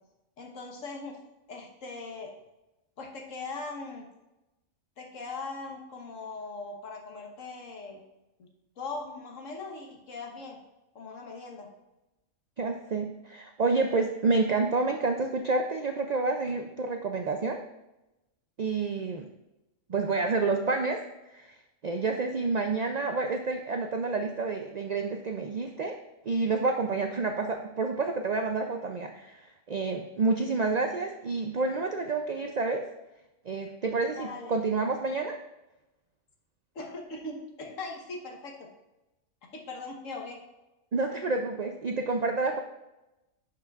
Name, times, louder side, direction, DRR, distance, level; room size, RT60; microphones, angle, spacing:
voice 1, 0.4-1.2 1.5-2.3 3.0-4.1 5.0-8.0 8.4-8.5 8.8-10.6 10.9-11.7 34.2-34.6 36.7-38.7 39.5-40.4, left 3 dB, 75° left, 2 dB, 1.5 m, -40 dB
voice 2, 12.6-17.6 18.6-19.3 19.9-21.0 21.3-21.6 21.8-26.0 26.3-29.4 29.7-32.9 33.5-35.4 40.9-42.6, right 3 dB, 70° right, 4 dB, 0.4 m, -29 dB
11.0 x 5.8 x 2.4 m, 0.97 s
omnidirectional pair, 1.4 m